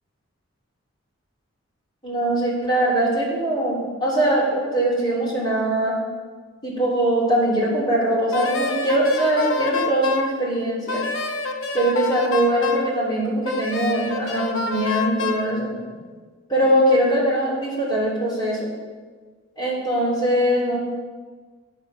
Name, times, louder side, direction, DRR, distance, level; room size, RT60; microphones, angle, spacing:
voice 1, 2.0-6.0 6.6-11.0 11.7-15.7 16.5-18.6 19.6-20.8, right 1 dB, 20° left, -6 dB, 3.1 m, -21 dB
Wind instrument woodwind instrument, 8.3-10.3 10.9-12.9 13.4-15.5, left 4 dB, 70° left, 0.8 m, -27 dB
9.5 x 6.8 x 5.3 m, 1.5 s
head